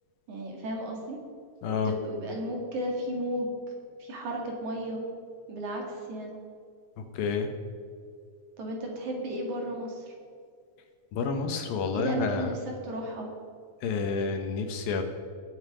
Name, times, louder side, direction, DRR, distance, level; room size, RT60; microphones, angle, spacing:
voice 1, 0.3-1.2 1.8-3.5 4.0-5.0 5.5-6.3 8.6-10.1 11.9-12.6 12.8-13.3, right 1 dB, 55° right, 0 dB, 3.1 m, -34 dB
voice 2, 1.6-1.9 7.1-7.5 11.1-12.5 13.8-15.0, left 5 dB, 70° left, 6 dB, 2.7 m, -29 dB
20.5 x 8.0 x 5.0 m, 2.2 s
omnidirectional pair, 4.5 m